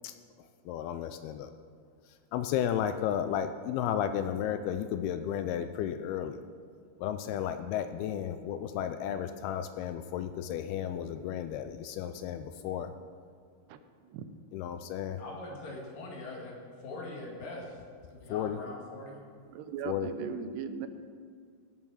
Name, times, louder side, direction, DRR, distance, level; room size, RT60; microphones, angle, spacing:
voice 1, 0.7-1.5 2.3-6.4 7.0-12.9 14.5-15.2 18.3-18.6 19.8-20.1, left 9 dB, 80° left, 9 dB, 2.4 m, -33 dB
voice 2, 13.7-14.4 19.5-20.9, right 6 dB, 90° right, 10 dB, 2.9 m, -38 dB
voice 3, 15.2-17.8 18.1-19.2, left 2 dB, 60° left, -1 dB, 3.6 m, -42 dB
16.0 x 7.4 x 6.3 m, 2.2 s
omnidirectional pair, 4.7 m